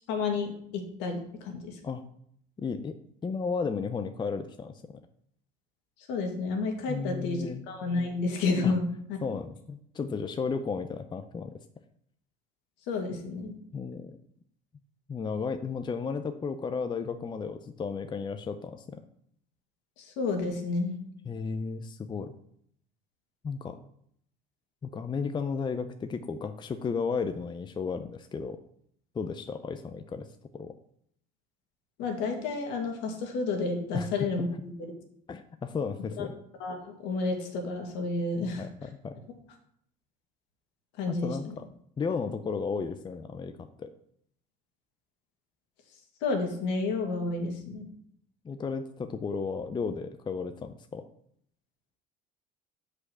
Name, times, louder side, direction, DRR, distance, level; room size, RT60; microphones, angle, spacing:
voice 1, 0.1-1.8 6.1-9.2 12.9-13.6 20.0-21.0 32.0-34.9 36.2-36.3 36.6-38.7 41.0-41.5 46.2-47.9, left 3 dB, 70° left, 3 dB, 2.0 m, -31 dB
voice 2, 2.6-3.0 3.2-5.0 6.9-7.6 8.6-8.7 9.2-11.6 13.7-14.2 15.1-19.0 21.2-22.3 23.4-23.8 24.8-28.6 29.1-30.3 30.5-30.7 33.9-34.5 35.3-36.4 38.4-39.2 41.1-41.7 42.0-43.9 48.4-51.1, left 5 dB, 25° left, 8 dB, 0.6 m, -34 dB
6.4 x 5.0 x 6.2 m, 0.68 s
supercardioid pair, 90°, 19 cm